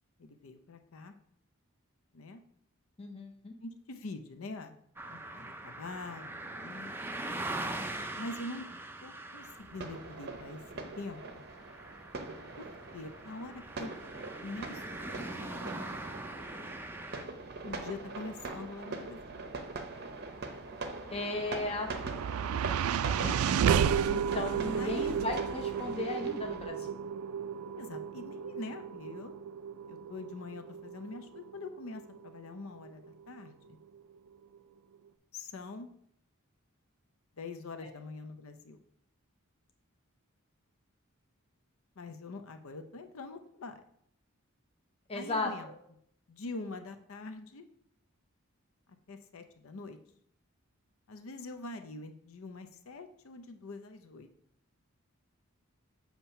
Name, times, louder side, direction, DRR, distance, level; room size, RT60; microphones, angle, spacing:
voice 1, 0.2-1.2 2.1-2.4 3.6-4.8 5.1-6.9 8.2-8.7 9.0-10.6 11.0-11.4 12.6-12.7 12.9-14.0 14.4-15.7 17.6-19.5 23.2-23.4 24.8-25.1 27.8-29.3 29.9-33.8 35.3-35.9 37.3-38.8 42.0-43.8 45.1-45.7 46.3-47.7 49.1-50.0 51.1-54.3, left 3 dB, 70° left, 8 dB, 0.6 m, -44 dB
voice 2, 3.0-3.6 21.1-21.9 24.1-26.9 37.8-37.9 45.1-45.8, left 2 dB, 25° left, 2 dB, 0.7 m, -36 dB
sound 1, 5.0-17.2, right 2 dB, 10° right, 0.4 m, -42 dB
sound 2, 9.4-26.7, right 3 dB, 50° right, 0.6 m, -43 dB
sound 3, 21.1-33.4, right 7 dB, 85° right, 0.3 m, -33 dB
7.3 x 2.9 x 5.5 m, 0.68 s
head